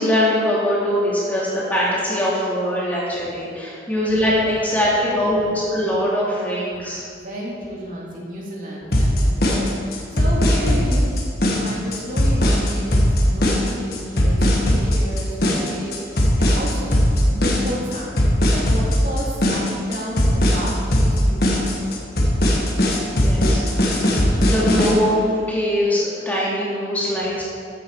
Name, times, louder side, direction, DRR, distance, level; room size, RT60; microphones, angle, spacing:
voice 1, 0.0-7.0 23.1-24.1 24.4-27.4, left 1 dB, 10° left, -7 dB, 3.0 m, -22 dB
voice 2, 7.1-17.0 17.3-18.2 18.4-22.4, equal, 45° right, -5 dB, 2.9 m, -32 dB
sound 1, 8.9-24.9, equal, 55° left, 1.8 m, -18 dB
13.5 x 8.8 x 4.9 m, 2.3 s
head